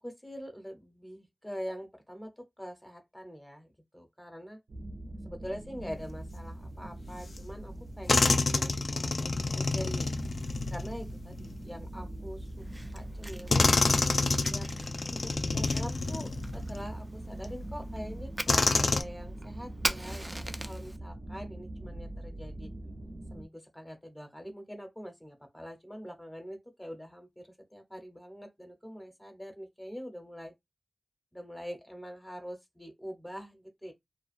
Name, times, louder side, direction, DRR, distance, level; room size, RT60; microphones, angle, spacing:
voice 1, 0.0-4.6 5.2-10.1 10.7-12.5 12.9-13.7 14.5-14.7 15.0-22.7 23.3-30.5 31.3-33.9, equal, 10° left, 0.7 m, -44 dB
sound 1, 4.7-23.5, right 1 dB, 65° right, 0.6 m, -42 dB
sound 2, 7.4-7.5 8.1-11.7 12.7-12.8 13.5-16.8 17.4-17.5 18.5-19.0, left 3 dB, 70° left, 0.4 m, -28 dB
Fire, 12.6-21.0, right 1 dB, 15° right, 0.3 m, -41 dB
2.4 x 2.3 x 2.4 m
wide cardioid pair, 80°, 0 cm